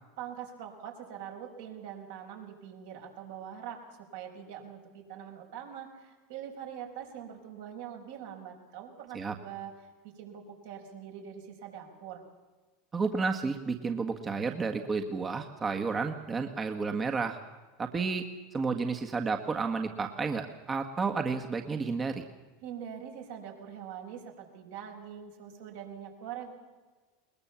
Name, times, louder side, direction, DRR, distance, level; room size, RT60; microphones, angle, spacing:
voice 1, 0.2-3.8 4.1-9.7 10.0-12.2 22.6-26.5, right 9 dB, 70° right, 1 dB, 5.7 m, -43 dB
voice 2, 12.9-17.4 17.8-18.2 18.5-22.2, right 4 dB, 25° right, 5 dB, 1.6 m, -31 dB
21.0 x 21.0 x 7.2 m, 1.3 s
hypercardioid pair, 85°, 0 cm